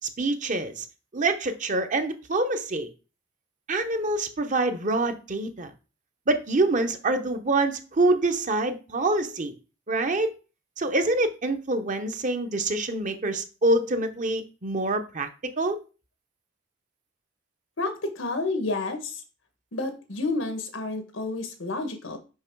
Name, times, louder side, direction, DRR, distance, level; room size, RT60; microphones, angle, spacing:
voice 1, 0.2-0.8 1.1-2.9 3.7-5.7 6.3-9.5 9.9-10.3 10.8-15.8, right 2 dB, 40° right, 0.9 m, -26 dB
voice 2, 17.8-19.2 19.7-22.2, left 3 dB, 90° left, 1.4 m, -30 dB
5.7 x 5.5 x 4.6 m
head